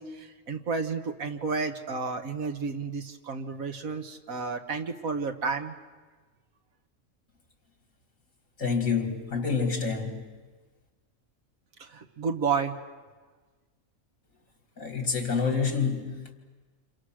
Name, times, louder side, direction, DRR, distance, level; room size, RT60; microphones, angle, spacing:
voice 1, 0.0-5.8 11.8-12.8, right 5 dB, 90° right, 1.9 m, -31 dB
voice 2, 8.6-10.2 14.8-16.3, left 5 dB, 75° left, 3.2 m, -28 dB
28.5 x 28.5 x 6.4 m
omnidirectional pair, 1.4 m